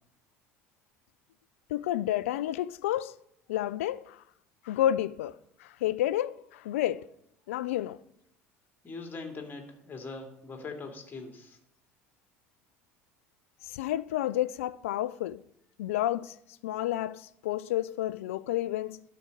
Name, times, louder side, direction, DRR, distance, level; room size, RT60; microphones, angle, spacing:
voice 1, 1.7-3.2 3.5-4.2 4.6-7.1 7.5-8.0 13.6-15.4 15.8-16.4 16.6-19.0, left 13 dB, 70° left, 0.4 m, -30 dB
voice 2, 8.8-11.6, left 3 dB, 25° left, 2.4 m, -41 dB
12.5 x 4.8 x 6.5 m
figure-of-eight pair, 65°, 8 cm